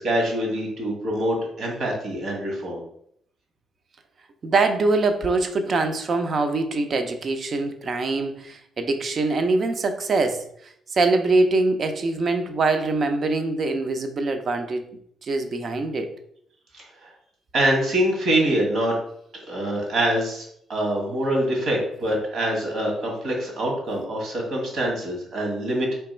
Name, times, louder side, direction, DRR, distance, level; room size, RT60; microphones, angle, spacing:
voice 1, 0.0-2.8 16.7-17.1 17.5-18.9 19.5-25.9, right 1 dB, 65° right, -1 dB, 1.7 m, -25 dB
voice 2, 4.4-14.8 15.2-16.1, right 3 dB, 50° right, 7 dB, 0.6 m, -23 dB
3.4 x 3.0 x 4.3 m, 0.69 s
cardioid pair, 90°, 0 cm